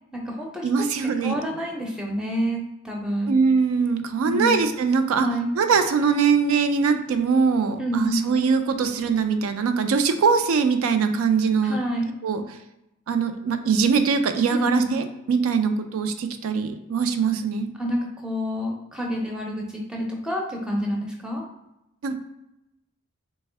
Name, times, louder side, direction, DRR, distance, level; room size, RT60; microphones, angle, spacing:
voice 1, 0.1-0.7 1.2-3.3 4.2-4.7 5.2-5.6 7.8-8.3 11.6-12.1 14.5-15.0 17.8-21.4, equal, 5° right, -1 dB, 0.5 m, -28 dB
voice 2, 0.6-1.4 3.3-5.3 5.6-11.8 12.2-12.4 13.1-17.7 22.0-22.2, right 5 dB, 80° right, 8 dB, 0.4 m, -22 dB
3.4 x 2.2 x 3.3 m, 0.89 s
head